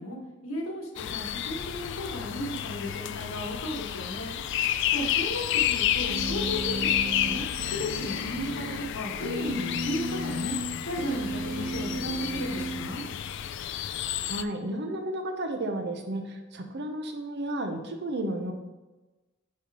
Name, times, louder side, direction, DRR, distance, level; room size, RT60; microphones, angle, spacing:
voice 1, 0.0-4.4 4.9-6.9 7.2-7.4 7.7-10.5 10.8-13.0, left 1 dB, 80° left, 1 dB, 1.4 m, -35 dB
sound 1, 1.0-14.4, left 11 dB, 60° left, 0.3 m, -31 dB
sound 2, 6.1-13.5, right 1 dB, 85° right, 1.3 m, -35 dB
voice 2, 14.2-18.5, right 1 dB, 55° right, 5 dB, 0.8 m, -32 dB
5.5 x 4.3 x 4.7 m, 1.2 s
head